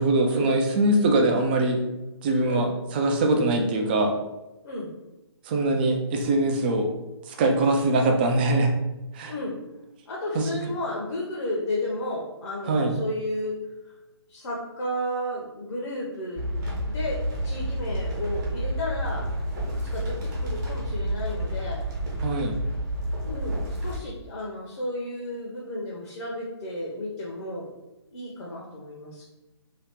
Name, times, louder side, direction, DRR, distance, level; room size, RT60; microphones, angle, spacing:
voice 1, 0.0-1.8 2.2-4.1 5.5-6.9 7.3-8.7 9.1-9.3 10.3-10.5 12.7-12.9 22.2-22.6, right 2 dB, 20° right, 2 dB, 0.3 m, -22 dB
voice 2, 10.1-13.6 14.3-16.4 16.8-19.2 19.6-21.8 23.3-27.7 28.1-29.3, left 1 dB, 60° left, -3 dB, 0.8 m, -33 dB
sound 1, 16.4-24.0, equal, 40° right, 1.0 m, -29 dB
2.8 x 2.3 x 3.5 m, 1.0 s
hypercardioid pair, 145°, 15 cm